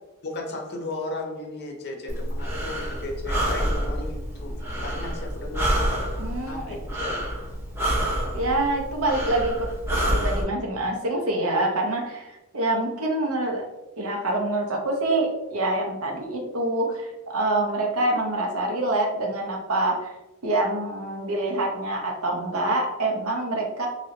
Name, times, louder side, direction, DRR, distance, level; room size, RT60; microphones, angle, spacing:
voice 1, 0.2-5.7 6.4-7.3, left 2 dB, 50° left, 2 dB, 0.6 m, -35 dB
Breathing, 2.1-10.4, equal, 10° right, 0.6 m, -28 dB
voice 2, 6.2-6.8 8.3-13.7 14.0-20.1 20.4-23.9, right 2 dB, 80° right, 0 dB, 0.8 m, -26 dB
3.0 x 2.8 x 2.7 m, 0.98 s
head